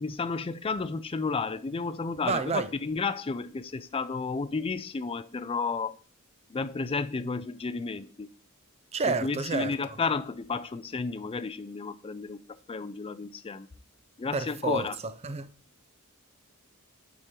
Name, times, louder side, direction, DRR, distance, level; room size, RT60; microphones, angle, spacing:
voice 1, 0.0-6.0 6.5-8.3 9.1-12.4 12.7-13.7 14.2-15.0, left 4 dB, 25° left, 0.4 m, -32 dB
voice 2, 2.2-2.7 8.9-10.0 14.3-15.5, right 4 dB, 30° right, 0.5 m, -30 dB
9.3 x 3.7 x 4.4 m
head